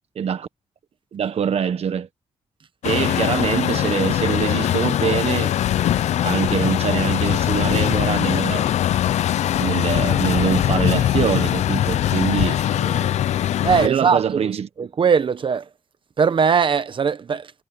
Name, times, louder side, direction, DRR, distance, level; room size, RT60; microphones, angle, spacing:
voice 1, 0.1-0.5 1.1-2.1 2.8-5.5 6.2-8.7 9.6-13.1 13.8-14.7, right 8 dB, 60° right, 1.4 m, -24 dB
Truck, 2.8-13.9, left 11 dB, 80° left, 0.6 m, -21 dB
voice 2, 13.6-14.5 14.8-15.7 16.2-17.5, right 6 dB, 45° right, 1.0 m, -20 dB
cardioid pair, 95°, 12 cm